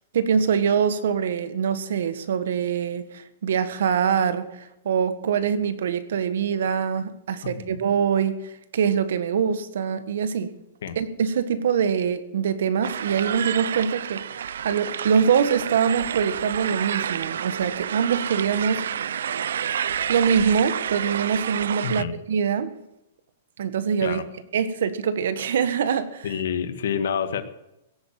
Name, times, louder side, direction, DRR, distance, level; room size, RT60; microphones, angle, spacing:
voice 1, 0.1-10.5 10.9-18.8 20.1-22.8 23.6-24.2 24.5-26.3, right 7 dB, 70° right, 1.5 m, -24 dB
voice 2, 7.4-7.8 10.8-11.0 21.8-22.2 24.0-24.2 26.2-27.5, left 7 dB, 70° left, 1.7 m, -28 dB
sound 1, 12.8-22.0, right 9 dB, 85° right, 0.5 m, -29 dB
17.0 x 9.0 x 7.6 m
supercardioid pair, 175°, 0 cm